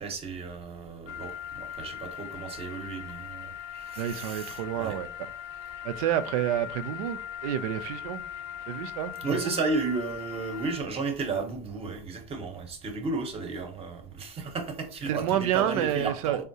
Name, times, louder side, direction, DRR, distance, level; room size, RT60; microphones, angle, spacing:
voice 1, 0.0-5.0 9.2-16.4, right 4 dB, 30° right, 0.8 m, -33 dB
sound 1, 1.1-10.8, left 10 dB, 65° left, 0.5 m, -40 dB
voice 2, 4.0-5.1 5.8-8.2 8.7-9.5 15.1-16.4, right 11 dB, 70° right, 0.4 m, -29 dB
3.6 x 2.0 x 2.7 m
hypercardioid pair, 85°, 19 cm